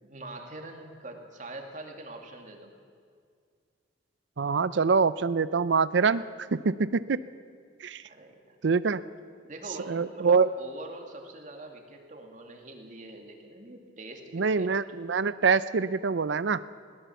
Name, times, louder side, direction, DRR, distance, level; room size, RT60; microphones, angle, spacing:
voice 1, 0.0-2.7 8.1-8.6 9.4-14.7, right 1 dB, 40° right, 3 dB, 2.3 m, -44 dB
voice 2, 4.4-6.2 6.5-7.2 7.8-8.0 8.6-9.0 9.9-10.5 14.3-16.6, right 5 dB, 70° right, 16 dB, 0.5 m, -25 dB
20.5 x 18.0 x 7.1 m, 2.1 s
head